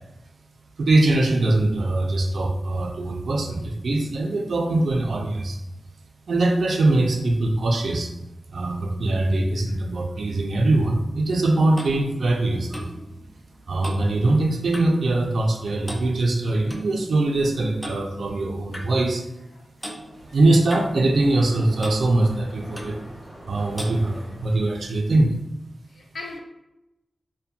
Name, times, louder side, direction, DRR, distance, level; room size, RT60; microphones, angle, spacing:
voice 1, 0.8-5.6 6.3-8.1 8.5-12.9 13.7-19.2 20.3-23.0 23.5-25.3, right 2 dB, 70° right, 0.4 m, -22 dB
Clock, 11.2-15.1 15.3-15.6 15.8-16.9 17.8-18.0 18.7-18.9 19.8-20.0 20.7-21.5 21.8-22.0 22.7-23.0 23.8-24.0, equal, 10° left, 0.3 m, -38 dB
Mechanisms, 20.0-25.2, right 1 dB, 30° right, 0.7 m, -44 dB
voice 2, 25.9-26.4, left 3 dB, 75° left, 0.4 m, -38 dB
2.7 x 2.1 x 2.3 m
wide cardioid pair, 135°, 0 cm